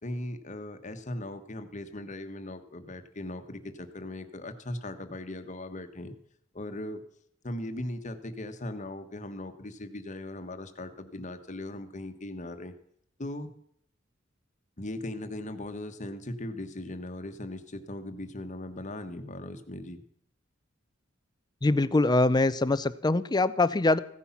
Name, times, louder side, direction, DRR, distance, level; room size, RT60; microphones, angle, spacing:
voice 1, 0.0-6.2 6.5-7.0 7.4-12.7 13.2-13.5 14.8-20.0, left 1 dB, 40° left, 8 dB, 1.3 m, -38 dB
voice 2, 21.6-24.0, left 2 dB, 20° left, 15 dB, 0.5 m, -23 dB
15.5 x 10.0 x 5.8 m, 0.70 s
head